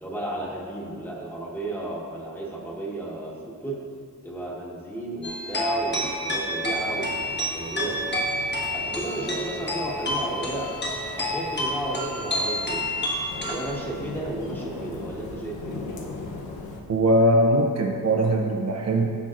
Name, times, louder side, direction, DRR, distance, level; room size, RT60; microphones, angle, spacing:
voice 1, 0.0-3.8 4.2-8.2 8.7-10.7 11.2-12.9 13.4-15.8, right 2 dB, 5° left, -4 dB, 1.3 m, -33 dB
sound 1, 5.2-13.7, left 1 dB, 30° left, 1.3 m, -29 dB
sound 2, 6.7-16.8, left 3 dB, 85° left, 0.9 m, -40 dB
voice 2, 16.9-19.2, right 1 dB, 45° right, 0 dB, 0.6 m, -21 dB
13.5 x 5.6 x 2.5 m, 2.3 s
wide cardioid pair, 130°, 36 cm